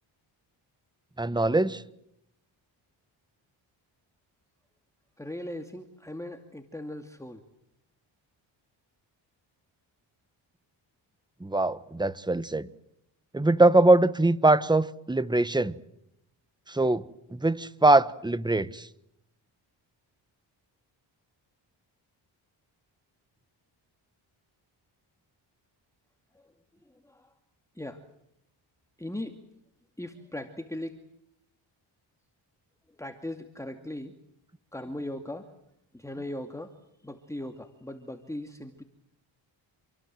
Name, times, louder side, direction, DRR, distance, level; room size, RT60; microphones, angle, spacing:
voice 1, 1.2-1.8 11.4-12.7 13.3-15.7 16.7-17.0 17.3-18.9, right 2 dB, 10° right, 1.3 m, -22 dB
voice 2, 5.2-7.4 26.3-26.5 26.8-27.3 27.7-28.0 29.0-29.4 30.0-31.0 32.9-34.2 34.7-35.5 35.9-38.8, left 1 dB, 5° left, 2.4 m, -39 dB
28.0 x 23.5 x 7.7 m
cardioid pair, 70°, 48 cm